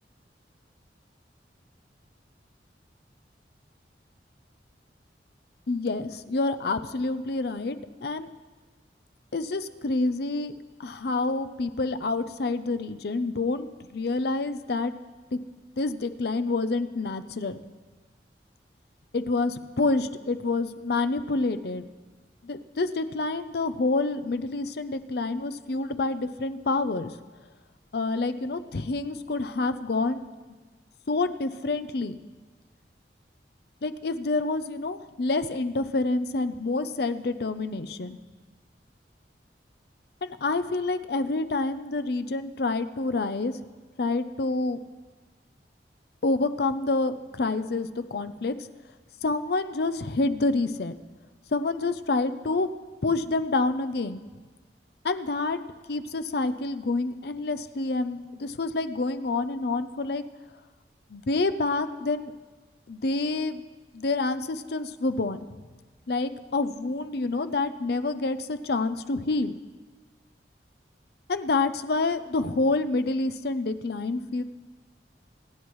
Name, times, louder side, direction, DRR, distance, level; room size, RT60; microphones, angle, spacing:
voice 1, 5.7-7.8 8.0-8.3 9.3-10.5 10.8-14.9 15.3-15.4 15.8-17.6 19.1-21.8 22.4-27.1 27.9-30.2 31.1-32.2 33.8-38.2 40.2-43.6 44.0-44.8 46.2-48.6 49.2-51.0 51.5-52.7 53.0-54.2 55.0-55.6 55.9-60.2 61.1-62.3 62.9-63.6 63.9-65.5 66.1-69.5 71.3-74.4, left 3 dB, 60° left, 11 dB, 0.6 m, -28 dB
25.0 x 10.0 x 3.1 m, 1.3 s
head